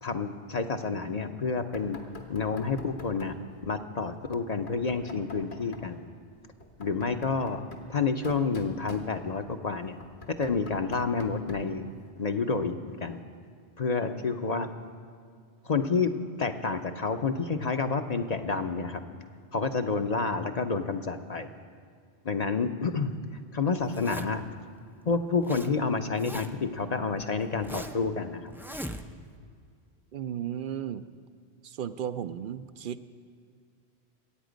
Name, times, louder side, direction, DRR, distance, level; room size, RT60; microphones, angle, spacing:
voice 1, 0.0-2.0 2.3-3.3 3.6-6.0 6.8-7.6 7.9-10.0 10.3-13.2 13.8-14.7 15.6-16.1 16.4-19.0 19.5-21.5 22.2-23.1 23.5-24.4 25.1-28.5, left 4 dB, 45° left, 7 dB, 0.7 m, -29 dB
Knock, 1.7-3.5 4.7-5.9 6.6-9.5 10.0-11.8, left 2 dB, 75° left, 1.6 m, -47 dB
Zipper (clothing), 23.8-24.5 25.1-25.7 26.0-26.7 27.2-28.1 28.5-29.4, equal, 5° right, 0.3 m, -40 dB
voice 2, 30.1-31.1 31.6-33.1, right 9 dB, 60° right, 12 dB, 0.7 m, -35 dB
23.5 x 8.9 x 5.1 m, 2.2 s
omnidirectional pair, 1.1 m